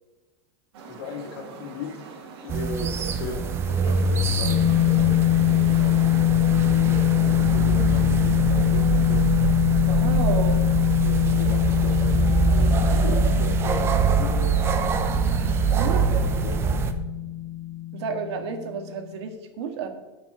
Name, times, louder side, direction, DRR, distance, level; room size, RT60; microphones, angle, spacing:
sound 1, 0.7-13.1, right 4 dB, 65° right, 2.5 m, -44 dB
voice 1, 0.9-2.0 2.4-8.8 9.1-9.3 10.3-14.6 15.8-15.9 16.2-16.6, left 4 dB, 70° left, 3 dB, 2.4 m, -38 dB
sound 2, 2.5-16.9, right 5 dB, 20° right, 0.6 m, -24 dB
sound 3, 4.4-18.9, left 14 dB, 40° right, 1.4 m, -23 dB
voice 2, 9.8-10.6 15.3-16.2 17.9-19.9, right 6 dB, 90° right, 5 dB, 1.9 m, -31 dB
15.0 x 6.0 x 4.4 m, 1.1 s
supercardioid pair, 175°, 14 cm